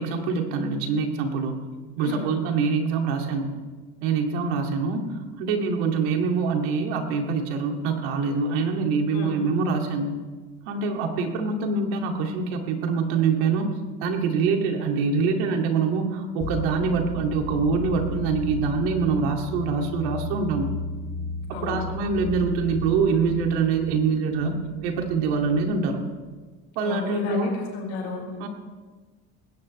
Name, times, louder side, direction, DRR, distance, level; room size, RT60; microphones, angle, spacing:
voice 1, 0.0-1.6 2.0-3.5 4.0-5.1 5.4-10.2 10.7-13.7 14.0-20.7 21.5-24.5 24.8-26.0 26.8-27.6 28.4-28.5, right 5 dB, 90° right, 3 dB, 2.4 m, -25 dB
voice 2, 2.0-2.3 9.1-9.4 21.5-21.8 26.8-28.3, left 3 dB, 60° left, 0 dB, 4.7 m, -33 dB
sound 1, 16.4-26.0, left 2 dB, 35° left, 2.6 m, -34 dB
20.0 x 17.0 x 3.2 m, 1.4 s
cardioid pair, 180°, 30 cm